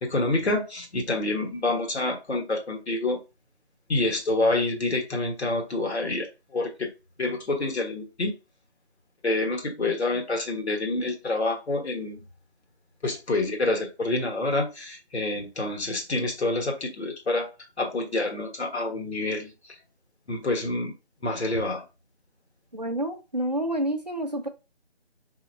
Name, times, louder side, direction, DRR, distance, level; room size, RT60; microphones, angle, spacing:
voice 1, 0.0-3.2 3.9-6.9 7.2-8.4 9.2-12.2 13.0-17.5 17.8-19.7 20.3-20.9 21.2-21.8, left 2 dB, 75° left, 1.4 m, -27 dB
voice 2, 22.7-24.5, right 1 dB, 40° right, 0.5 m, -28 dB
4.2 x 2.8 x 2.6 m
figure-of-eight pair, 175°, 33 cm